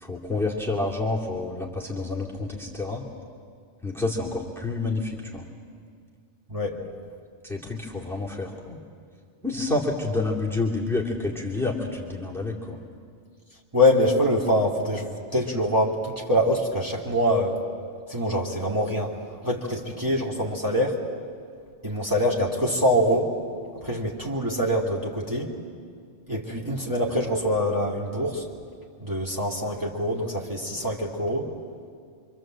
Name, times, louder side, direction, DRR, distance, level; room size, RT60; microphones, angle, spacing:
voice 1, 0.0-3.0 3.8-5.5 7.4-8.8 9.4-12.8, left 2 dB, ahead, -2 dB, 2.7 m, -29 dB
voice 2, 6.5-6.8 13.7-17.6 18.1-19.1 19.4-21.0 21.8-23.3 23.8-25.5 26.3-28.4 29.0-31.5, equal, 15° right, -3 dB, 2.9 m, -24 dB
26.5 x 25.5 x 7.7 m, 2.2 s
omnidirectional pair, 1.2 m